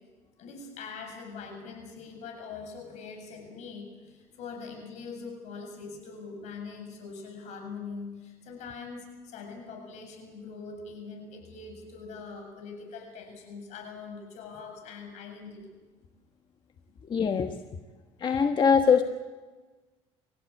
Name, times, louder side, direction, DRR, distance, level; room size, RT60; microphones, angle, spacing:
voice 1, 0.4-15.7, left 4 dB, 75° left, 4 dB, 7.4 m, -42 dB
voice 2, 17.0-17.6 18.2-19.0, left 6 dB, 40° left, 5 dB, 1.4 m, -22 dB
28.0 x 15.5 x 8.6 m, 1.3 s
cardioid pair, 95°, 12 cm